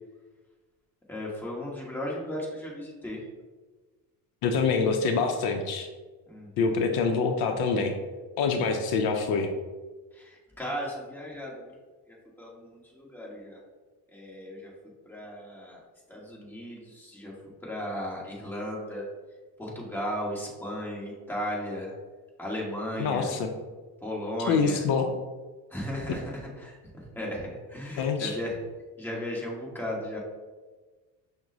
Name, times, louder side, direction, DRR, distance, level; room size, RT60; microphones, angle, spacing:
voice 1, 1.1-3.3 6.3-6.7 10.1-11.8 12.1-13.6 14.1-14.7 15.0-15.8 16.1-17.3 17.6-19.0 19.6-21.9 22.4-23.3 24.0-24.8 25.7-28.6 29.0-30.2, left 1 dB, 5° left, -4 dB, 1.3 m, -36 dB
voice 2, 4.4-5.9 6.6-7.9 8.4-9.5 23.0-23.5 24.5-25.1 28.0-28.4, left 5 dB, 75° left, 5 dB, 0.6 m, -25 dB
5.8 x 2.1 x 3.8 m, 1.3 s
cardioid pair, 100°, 38 cm